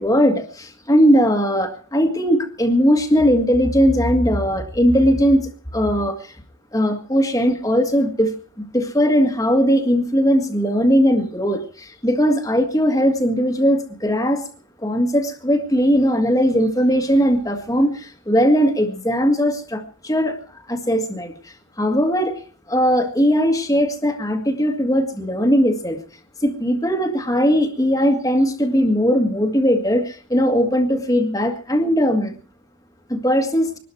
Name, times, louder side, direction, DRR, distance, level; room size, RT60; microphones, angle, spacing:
voice 1, 0.0-6.3 6.7-8.3 8.6-14.5 14.8-20.4 20.7-22.4 22.7-26.0 26.4-32.3 33.1-33.7, equal, 15° left, 4 dB, 1.9 m, -19 dB
23.0 x 12.5 x 4.7 m, 0.42 s
head